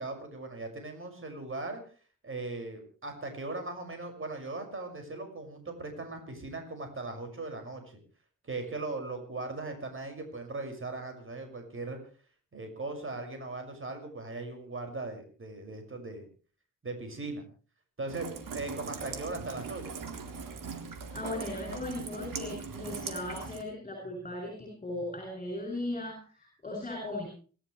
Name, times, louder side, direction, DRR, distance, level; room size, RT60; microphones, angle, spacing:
voice 1, 0.0-1.8 2.2-8.0 8.4-12.0 12.5-16.2 16.8-17.5 18.0-20.0, right 2 dB, 40° right, 5 dB, 6.1 m, -39 dB
Rain, 18.1-23.6, right 5 dB, 80° right, 3.7 m, -40 dB
voice 2, 21.1-27.3, left 2 dB, 25° left, 1 dB, 7.5 m, -37 dB
28.5 x 13.0 x 3.3 m, 0.39 s
cardioid pair, 75°, 32 cm